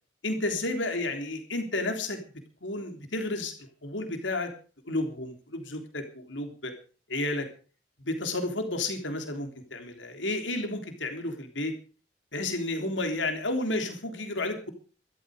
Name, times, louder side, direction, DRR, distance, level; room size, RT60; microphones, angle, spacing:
voice 1, 0.2-2.2 2.6-4.5 4.9-6.7 7.1-7.5 8.0-11.7 12.3-14.7, left 2 dB, 80° left, 5 dB, 3.5 m, -31 dB
13.5 x 13.0 x 6.5 m, 0.40 s
head